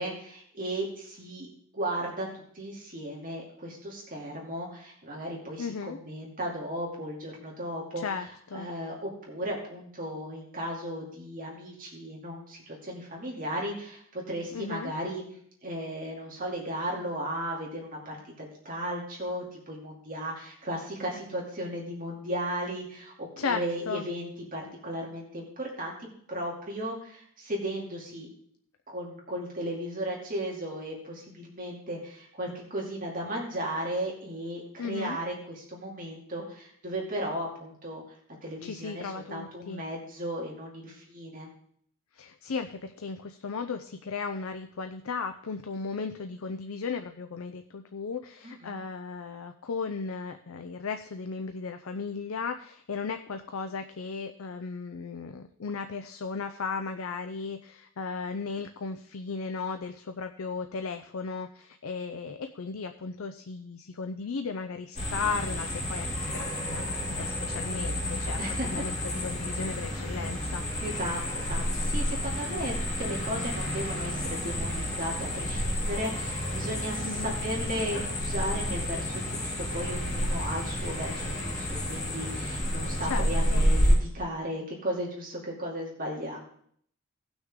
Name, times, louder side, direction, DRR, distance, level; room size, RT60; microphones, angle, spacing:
voice 1, 0.0-1.5 1.7-8.0 8.5-15.2 15.6-28.3 28.9-38.0 38.4-41.5 48.4-48.8 68.4-68.7 70.8-86.4, right 1 dB, 40° right, -2 dB, 2.6 m, -35 dB
voice 2, 5.6-6.0 8.0-8.7 14.5-14.9 23.4-24.0 34.8-35.2 38.6-39.8 42.1-70.6 77.0-77.4 83.0-83.6, left 5 dB, 80° left, 7 dB, 0.6 m, -36 dB
sound 1, 65.0-84.0, equal, 35° left, 2.4 m, -30 dB
17.5 x 6.2 x 3.7 m, 0.64 s
head